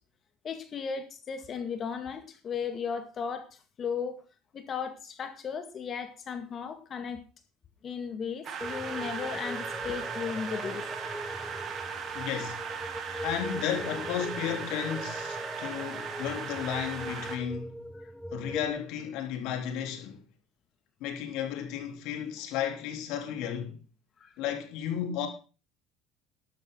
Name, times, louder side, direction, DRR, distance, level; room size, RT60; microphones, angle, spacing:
voice 1, 0.4-3.5 3.8-4.2 4.5-7.2 7.8-10.9 18.0-18.1 24.2-24.3, left 6 dB, 35° left, 2.0 m, -35 dB
sound 1, 8.4-17.4, right 6 dB, 40° right, 3.0 m, -38 dB
sound 2, 8.6-18.7, equal, ahead, 1.0 m, -41 dB
voice 2, 12.1-12.6 13.2-17.8 18.3-20.2 21.0-23.8 24.4-25.3, left 9 dB, 70° left, 3.7 m, -33 dB
12.5 x 12.0 x 3.9 m
supercardioid pair, 120°, 0 cm